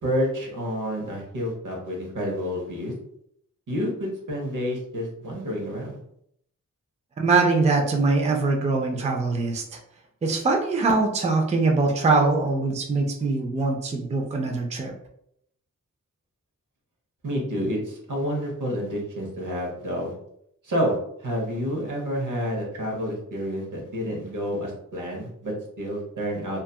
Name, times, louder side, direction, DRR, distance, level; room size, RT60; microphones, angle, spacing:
voice 1, 0.0-2.9 3.7-6.0 17.2-20.1 20.6-26.6, equal, 80° right, -1 dB, 0.8 m, -29 dB
voice 2, 7.2-9.6 10.2-14.9, right 3 dB, 25° right, 1 dB, 0.3 m, -22 dB
2.7 x 2.3 x 2.2 m, 0.73 s
wide cardioid pair, 125°, 31 cm